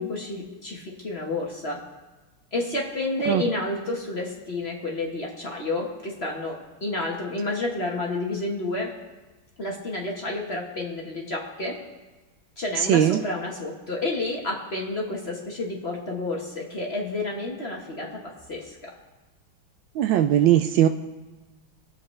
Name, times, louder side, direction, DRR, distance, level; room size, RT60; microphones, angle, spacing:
voice 1, 0.0-1.8 2.5-8.9 9.6-11.8 12.6-18.9, left 2 dB, 35° left, -2 dB, 1.3 m, -30 dB
voice 2, 12.8-13.2 20.0-20.9, right 11 dB, 75° right, 8 dB, 1.2 m, -19 dB
22.5 x 7.8 x 3.2 m, 1.2 s
omnidirectional pair, 2.3 m